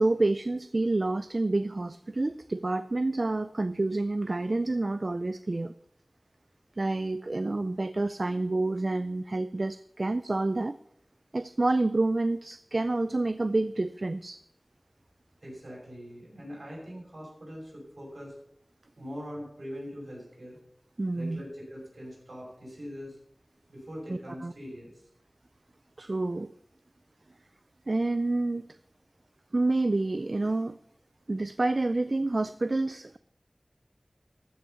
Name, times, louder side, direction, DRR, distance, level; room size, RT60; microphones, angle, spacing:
voice 1, 0.0-5.7 6.8-10.8 11.3-14.4 21.0-21.4 24.1-24.5 26.0-26.5 27.9-28.7 29.5-30.8 31.3-33.2, right 2 dB, 65° right, 13 dB, 0.4 m, -28 dB
voice 2, 15.4-18.3 19.0-20.6 21.1-23.2 23.7-25.1, equal, 85° right, -3 dB, 6.0 m, -42 dB
14.0 x 6.3 x 7.0 m, 0.74 s
wide cardioid pair, 45°, 0 cm